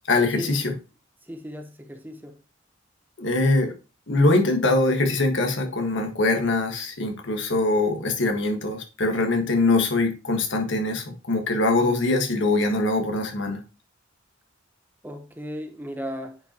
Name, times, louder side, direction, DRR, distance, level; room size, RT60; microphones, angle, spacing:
voice 1, 0.1-0.7 3.2-3.7 4.1-13.6, left 2 dB, 65° left, 1.4 m, -23 dB
voice 2, 1.2-2.4 15.0-16.4, equal, 10° right, 0.9 m, -35 dB
9.4 x 5.2 x 2.9 m
head